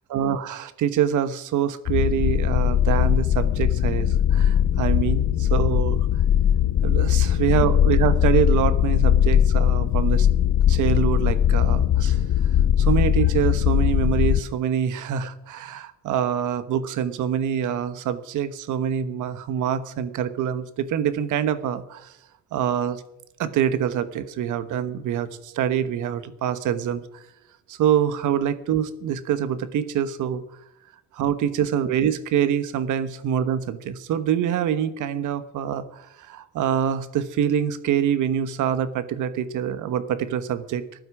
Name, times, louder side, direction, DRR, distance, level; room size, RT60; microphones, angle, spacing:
voice 1, 0.1-6.1 6.8-10.3 10.7-12.2 12.8-22.1 22.5-23.0 23.4-27.0 27.7-30.4 31.1-40.8, right 9 dB, 85° right, 13 dB, 1.2 m, -25 dB
sound 1, 1.9-14.4, left 10 dB, 60° left, 0.8 m, -20 dB
14.0 x 12.0 x 6.2 m, 0.83 s
cardioid pair, 90°, 30 cm